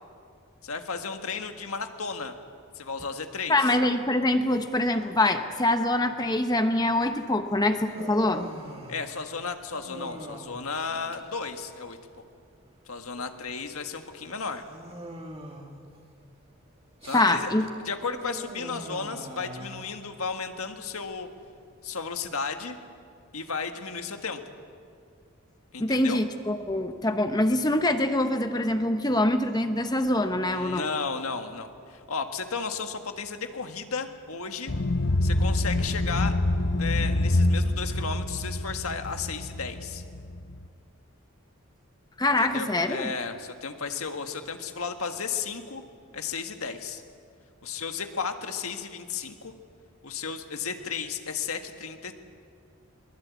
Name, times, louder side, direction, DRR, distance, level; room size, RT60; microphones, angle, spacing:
voice 1, 0.6-2.3 2.7-3.7 8.9-12.0 12.9-14.6 17.0-17.5 17.8-21.3 21.8-22.8 23.3-24.4 25.7-26.2 30.4-34.7 35.2-36.3 36.8-40.0 42.4-45.8 46.1-47.0 47.6-49.5 50.0-52.1, left 5 dB, 85° left, 6 dB, 1.7 m, -34 dB
voice 2, 3.5-8.5 17.1-17.7 25.8-30.9 42.2-43.1, left 1 dB, 20° left, 7 dB, 0.9 m, -24 dB
Human voice, 6.9-22.1, right 1 dB, 30° right, 2.4 m, -44 dB
sound 1, 34.7-40.7, left 1 dB, 50° left, 0.8 m, -26 dB
23.0 x 20.5 x 8.5 m, 2.3 s
head